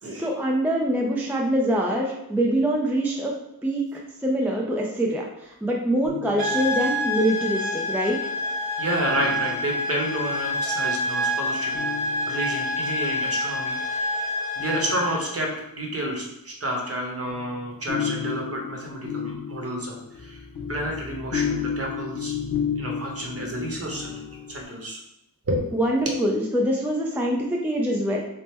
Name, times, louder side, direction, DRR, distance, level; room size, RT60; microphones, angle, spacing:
voice 1, 0.0-3.3 3.6-8.2 25.7-28.2, right 1 dB, 5° right, -1 dB, 0.4 m, -24 dB
sound 1, 6.0-7.1 9.0-10.1 11.7-12.8 14.6-15.7 17.3-24.6, left 7 dB, 85° left, 0.8 m, -33 dB
sound 2, 6.4-15.3, left 1 dB, 80° right, 0.8 m, -27 dB
voice 2, 8.8-11.7 12.3-14.3 14.6-15.5 15.7-20.4 20.7-22.4 22.8-25.0 25.5-25.6, equal, 40° right, 0 dB, 0.9 m, -30 dB
3.4 x 2.0 x 4.3 m, 0.85 s
wide cardioid pair, 105°, 36 cm